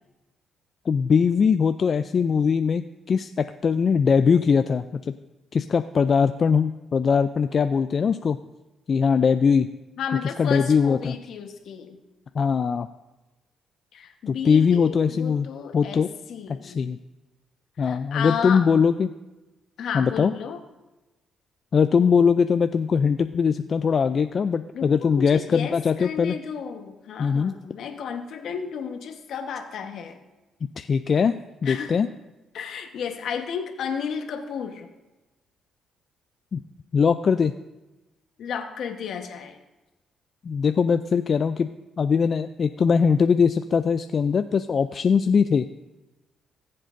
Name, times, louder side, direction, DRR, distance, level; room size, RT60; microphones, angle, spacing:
voice 1, 0.9-5.1 5.5-8.4 8.9-9.7 10.4-11.1 12.4-12.9 14.3-15.5 15.7-16.1 16.6-17.0 17.8-19.1 19.9-20.3 21.7-26.4 27.2-27.5 30.8-31.3 31.6-32.1 36.5-36.6 36.9-37.5 40.4-41.7 42.0-45.7, left 6 dB, 45° left, 9 dB, 0.3 m, -21 dB
voice 2, 10.0-12.0 13.9-16.8 17.8-18.6 19.8-20.6 24.7-30.2 31.6-32.0 32.5-34.9 38.4-39.6, left 7 dB, 70° left, 5 dB, 1.1 m, -33 dB
18.0 x 7.7 x 2.6 m, 1.1 s
cardioid pair, 90°, 0 cm